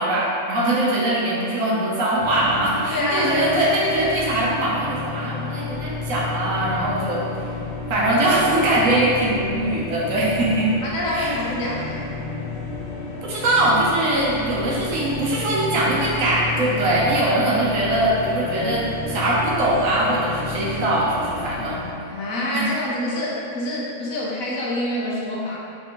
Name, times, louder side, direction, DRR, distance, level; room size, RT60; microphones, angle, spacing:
voice 1, 0.0-7.5 7.9-10.7 11.1-11.3 13.2-21.8 22.5-22.7, right 1 dB, 65° right, -6 dB, 1.1 m, -21 dB
sound 1, 2.2-21.9, left 4 dB, 85° left, 0.3 m, -31 dB
voice 2, 2.9-3.5 10.8-12.1 22.1-25.6, left 1 dB, 70° left, -4 dB, 1.2 m, -26 dB
4.0 x 3.3 x 3.0 m, 2.4 s
omnidirectional pair, 1.5 m